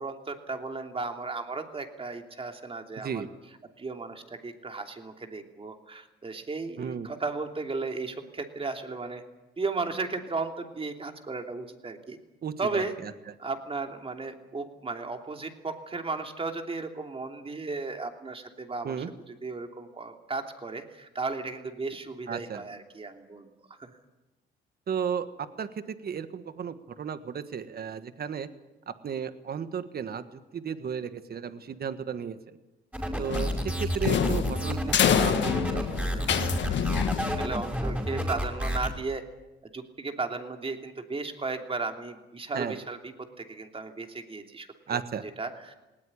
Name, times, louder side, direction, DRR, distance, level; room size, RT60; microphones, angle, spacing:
voice 1, 0.0-3.2 3.8-9.2 9.6-12.2 12.6-12.9 13.4-23.5 23.8-23.9 37.4-39.2 39.6-45.0 45.4-45.7, right 3 dB, 30° right, 4 dB, 3.0 m, -35 dB
voice 2, 3.0-3.3 6.8-7.1 12.4-13.1 18.8-19.1 22.3-22.6 24.9-28.5 28.9-32.4 33.2-36.4 42.5-42.8 44.9-45.2, right 7 dB, 50° right, 11 dB, 1.6 m, -34 dB
sound 1, 32.9-38.9, equal, 10° right, 5.6 m, -30 dB
sound 2, 33.3-37.8, left 8 dB, 65° left, 1.6 m, -27 dB
19.0 x 18.5 x 10.0 m, 1.0 s
cardioid pair, 90°, 20 cm